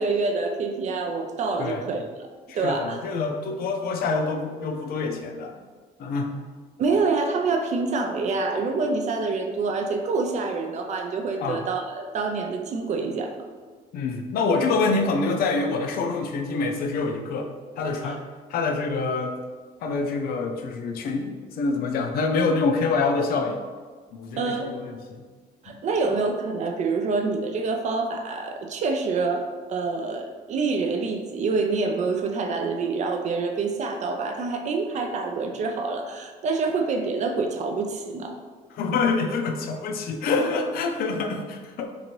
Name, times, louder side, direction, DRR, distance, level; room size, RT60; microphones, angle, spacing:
voice 1, 0.0-2.0 2.5-3.0 6.8-13.4 18.0-18.2 24.4-24.7 25.6-38.4, right 4 dB, 45° right, 4 dB, 0.4 m, -26 dB
voice 2, 2.5-5.5 6.0-6.3 11.4-11.6 13.9-17.5 17.8-18.2 18.5-19.4 19.8-23.6 24.1-25.2 25.7-25.8 38.7-41.9, left 4 dB, 60° left, 3 dB, 0.4 m, -26 dB
2.8 x 2.5 x 2.9 m, 1.5 s
cardioid pair, 110°, 17 cm